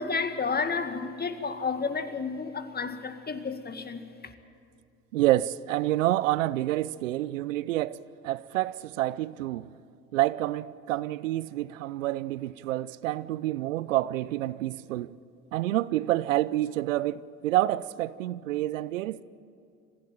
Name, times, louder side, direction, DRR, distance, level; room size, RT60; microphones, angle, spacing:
voice 1, 0.0-4.3, left 4 dB, 25° left, 1.9 m, -31 dB
voice 2, 5.1-8.0 8.2-9.7 10.1-15.1 15.5-19.2, right 15 dB, 80° right, 0.6 m, -28 dB
25.0 x 16.0 x 9.1 m
hypercardioid pair, 65°, 38 cm